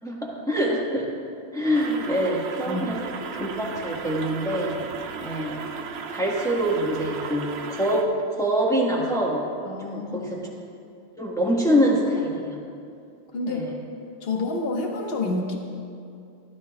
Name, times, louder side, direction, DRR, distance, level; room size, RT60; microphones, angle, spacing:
voice 1, 0.0-1.1 1.5-3.0 3.3-4.8 5.2-5.6 6.1-8.1 8.4-9.4 9.8-10.4 11.2-12.6 13.5-13.7, equal, ahead, -4 dB, 1.0 m, -25 dB
sound 1, 1.7-8.0, right 5 dB, 75° right, 1.5 m, -35 dB
voice 2, 9.7-10.5 13.3-13.6 14.2-15.6, left 3 dB, 35° left, 0 dB, 1.0 m, -29 dB
16.0 x 12.5 x 2.3 m, 2.4 s
omnidirectional pair, 2.4 m